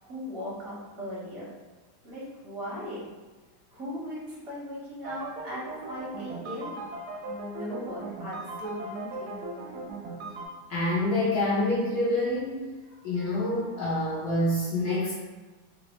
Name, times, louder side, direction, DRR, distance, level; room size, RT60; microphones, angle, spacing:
voice 1, 0.0-1.5 2.0-3.1 3.7-5.6 5.9-6.8 7.2-9.8, equal, 30° right, -7 dB, 0.5 m, -38 dB
sound 1, 5.0-10.5, right 2 dB, 70° right, 1.0 m, -39 dB
voice 2, 10.7-12.6 13.0-15.1, left 1 dB, 65° left, -8 dB, 1.0 m, -26 dB
3.9 x 2.1 x 3.0 m, 1.2 s
omnidirectional pair, 2.3 m